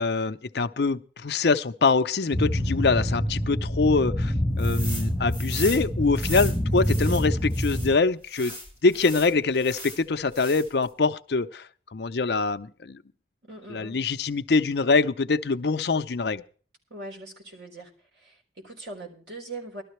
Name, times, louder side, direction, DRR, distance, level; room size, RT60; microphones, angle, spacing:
voice 1, 0.0-8.5 8.8-13.0 13.7-16.4, left 4 dB, 65° left, 0.6 m, -24 dB
sound 1, 2.3-7.9, equal, 10° left, 1.2 m, -26 dB
sound 2, 4.6-5.1 5.3-7.9 8.3-10.0 10.3-10.8, left 1 dB, 40° right, 7.2 m, -38 dB
voice 2, 13.4-14.0 16.9-19.8, right 2 dB, 75° right, 4.0 m, -41 dB
18.5 x 12.5 x 3.1 m
head